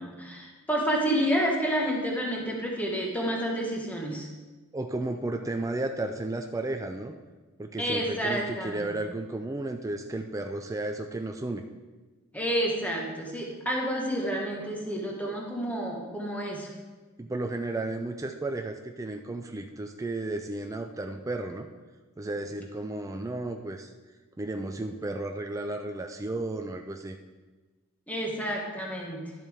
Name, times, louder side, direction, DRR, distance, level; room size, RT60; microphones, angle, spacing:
voice 1, 0.0-4.3 7.8-8.9 12.3-16.7 28.1-29.3, equal, 5° left, -1 dB, 1.4 m, -29 dB
voice 2, 4.7-7.1 7.6-11.6 17.2-21.7 22.2-23.9 24.4-27.2, right 2 dB, 15° right, 4 dB, 0.4 m, -33 dB
12.0 x 7.2 x 3.5 m, 1.3 s
head